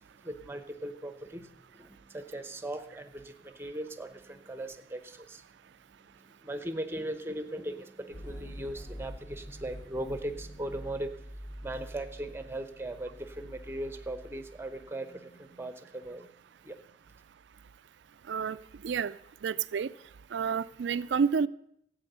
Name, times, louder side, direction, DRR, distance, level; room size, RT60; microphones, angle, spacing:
voice 1, 0.2-5.4 6.2-11.1 11.6-16.3 16.6-16.8, right 1 dB, 10° right, 10 dB, 0.8 m, -39 dB
sound 1, 8.1-14.9, equal, 35° left, 2.1 m, -46 dB
voice 2, 19.4-19.9 20.3-21.5, right 6 dB, 70° right, 16 dB, 0.4 m, -29 dB
13.5 x 8.6 x 6.7 m, 0.74 s
head